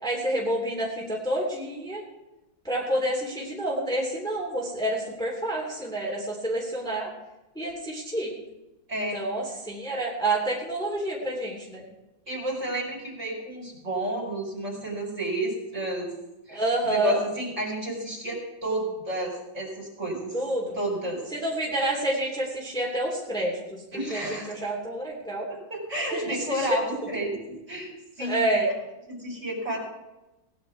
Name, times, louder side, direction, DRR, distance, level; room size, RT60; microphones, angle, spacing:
voice 1, 0.0-2.0 2.6-7.1 7.5-8.3 9.1-11.8 16.5-17.2 20.3-20.8 21.3-25.5 25.9-26.7 28.2-28.7, right 1 dB, ahead, -4 dB, 3.0 m, -28 dB
voice 2, 12.3-16.1 16.5-20.3 20.7-21.2 23.9-24.5 25.5-27.9 28.2-28.5 29.1-29.8, right 1 dB, 35° right, -2 dB, 5.1 m, -31 dB
18.0 x 10.5 x 4.8 m, 1.0 s
omnidirectional pair, 2.2 m